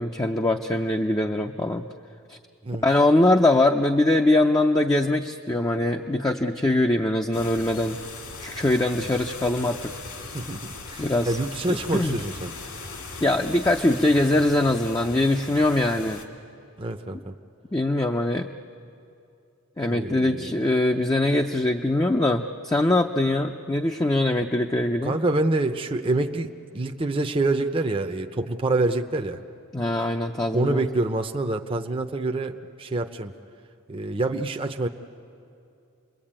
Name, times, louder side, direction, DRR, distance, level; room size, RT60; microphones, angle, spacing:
voice 1, 0.0-1.8 2.3-2.4 2.8-8.0 8.4-9.9 11.0-11.4 11.7-12.2 13.2-16.2 17.7-18.5 19.8-25.2 29.7-30.8, left 1 dB, 15° left, 3 dB, 0.6 m, -22 dB
sound 1, 7.3-16.2, left 3 dB, 65° left, 2.4 m, -39 dB
voice 2, 10.3-12.5 16.8-17.3 19.8-20.6 25.0-29.4 30.5-33.3 33.9-34.9, right 2 dB, 25° right, 5 dB, 0.7 m, -26 dB
28.5 x 22.0 x 8.8 m, 2.5 s
head